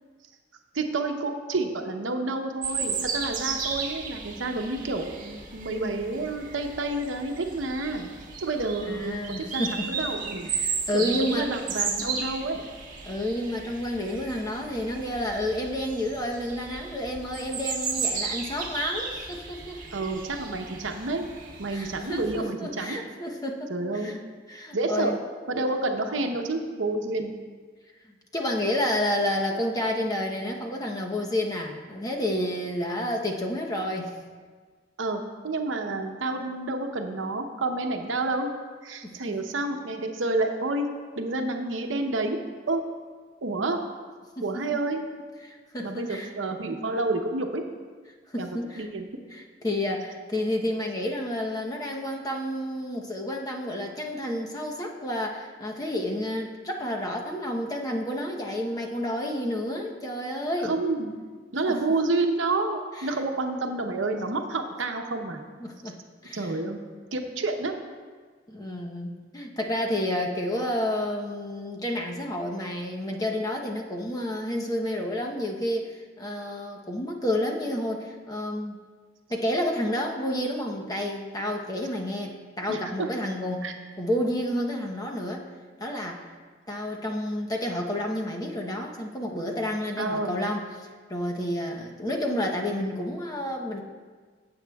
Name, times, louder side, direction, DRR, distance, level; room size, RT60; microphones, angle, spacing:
voice 1, 0.7-8.1 8.4-10.5 10.9-12.6 19.9-21.3 21.6-23.0 23.7-24.2 24.7-25.2 25.5-27.3 35.0-38.5 38.8-40.9 41.2-42.4 42.7-42.8 43.4-43.8 44.4-45.0 45.8-47.6 48.4-48.5 48.8-49.1 60.6-61.2 61.5-65.4 66.3-66.8 67.1-67.7 82.7-83.1 83.6-83.8 90.0-90.4, right 2 dB, 80° right, 4 dB, 0.8 m, -29 dB
sound 1, 2.6-22.4, right 5 dB, 45° right, 1.5 m, -34 dB
voice 2, 8.8-9.9 10.5-11.5 13.0-19.8 21.7-24.2 24.5-25.2 28.3-34.1 39.0-39.4 44.4-44.8 45.4-46.3 48.3-48.9 49.3-60.8 61.7-61.8 63.0-63.2 65.6-66.0 66.2-66.6 68.5-78.8 79.3-83.7 84.0-85.5 85.8-86.2 86.7-93.8, left 1 dB, 20° left, 0 dB, 0.9 m, -30 dB
15.5 x 7.9 x 2.3 m, 1.5 s
head